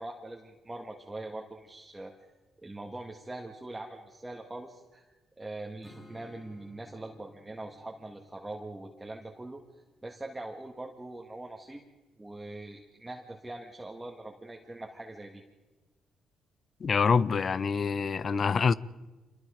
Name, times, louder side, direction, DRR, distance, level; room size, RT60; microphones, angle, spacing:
voice 1, 0.0-2.1 2.6-5.0 5.4-9.6 10.0-11.8 12.2-15.4, right 2 dB, 15° right, 1.8 m, -42 dB
Strum, 5.8-11.2, left 1 dB, 15° left, 5.2 m, -58 dB
voice 2, 16.8-18.7, left 5 dB, 45° left, 0.6 m, -26 dB
26.5 x 21.0 x 5.1 m
cardioid pair, 90°, 0 cm